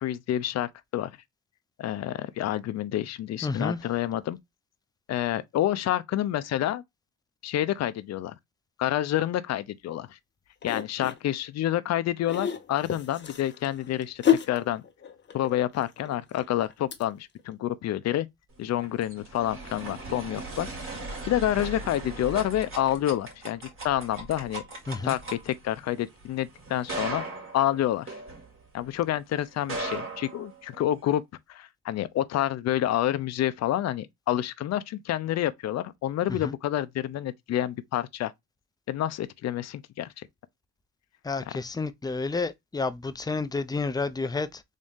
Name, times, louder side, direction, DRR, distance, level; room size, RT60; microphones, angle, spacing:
voice 1, 0.0-1.1 1.8-4.4 5.1-6.8 7.4-8.3 8.8-10.2 10.6-14.8 15.3-18.3 18.6-20.9 21.3-24.6 25.0-27.2 27.5-28.1 28.7-31.2 31.5-38.3 38.9-40.3, left 12 dB, 60° left, 0.5 m, -28 dB
voice 2, 3.4-3.8 24.9-25.2 36.3-36.5 41.2-44.6, left 3 dB, 15° left, 0.5 m, -30 dB
sound 1, 10.6-11.2 12.2-17.0 17.4-17.5, left 9 dB, 35° left, 0.8 m, -29 dB
sound 2, 18.6-28.9 29.5-31.0, right 2 dB, 45° right, 2.3 m, -38 dB
3.6 x 2.6 x 3.5 m
cardioid pair, 90°, 30 cm